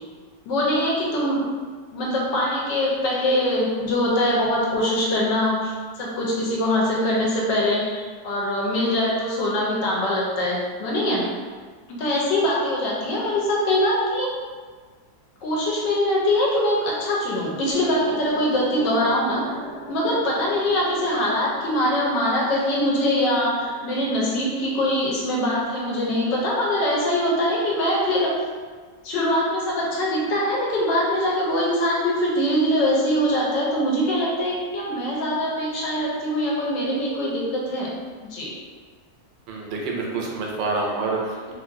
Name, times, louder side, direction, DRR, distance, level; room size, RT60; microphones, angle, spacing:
voice 1, 0.5-1.4 1.9-11.2 11.9-14.3 15.4-19.4 19.9-28.3 29.0-37.9 38.2-38.5, left 1 dB, 85° left, -4 dB, 1.4 m, -23 dB
sound 1, 17.7-26.4, right 1 dB, 25° right, 1.3 m, -39 dB
voice 2, 39.5-41.5, right 3 dB, 90° right, -1 dB, 1.3 m, -27 dB
3.3 x 2.6 x 2.5 m, 1.5 s
omnidirectional pair, 1.9 m